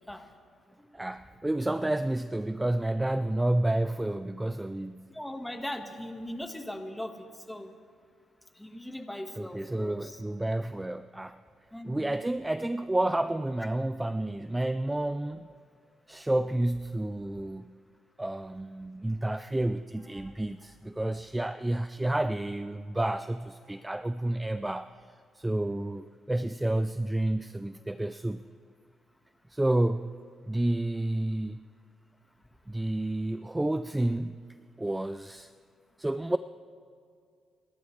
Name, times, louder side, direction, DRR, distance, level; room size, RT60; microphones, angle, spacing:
voice 1, 0.9-5.1 9.4-11.4 11.8-15.5 16.1-17.7 18.2-24.9 25.3-28.4 29.5-30.1 30.5-31.6 32.7-34.4 34.8-35.5 36.0-36.4, right 1 dB, 10° right, 12 dB, 0.4 m, -30 dB
voice 2, 5.1-7.7 8.6-10.1 11.7-12.2, left 1 dB, 5° left, 5 dB, 1.4 m, -39 dB
30.0 x 13.0 x 3.2 m, 2.3 s
cardioid pair, 90°, 0 cm